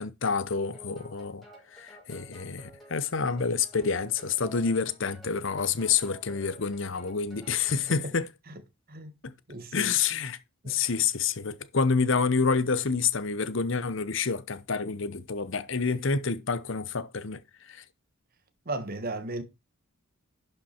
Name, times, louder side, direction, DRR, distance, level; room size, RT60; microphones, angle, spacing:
voice 1, 0.0-1.4 1.7-8.3 9.2-9.3 9.7-10.4 10.6-17.8, left 5 dB, 60° left, 0.8 m, -28 dB
sound 1, 0.7-8.1, equal, ahead, 3.9 m, -53 dB
voice 2, 9.5-9.9 10.6-10.8 18.6-19.4, right 2 dB, 40° right, 1.3 m, -35 dB
11.5 x 5.6 x 4.4 m
head